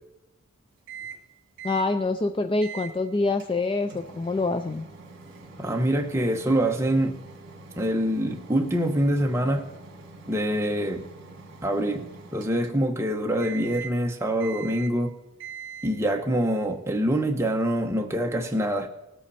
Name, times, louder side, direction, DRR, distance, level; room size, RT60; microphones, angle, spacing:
Microwave oven, 0.9-1.3 1.6-1.9 2.6-3.0 3.4-13.0 13.4-14.0 14.4-15.0 15.4-16.0, right 5 dB, 50° right, 2.1 m, -43 dB
voice 1, 1.6-4.8, left 3 dB, 25° left, 9 dB, 0.3 m, -26 dB
voice 2, 5.6-7.2 7.8-9.7 10.3-11.1 11.6-15.2 15.8-18.9, right 1 dB, 10° right, 2 dB, 1.1 m, -25 dB
19.0 x 8.2 x 4.3 m, 0.93 s
head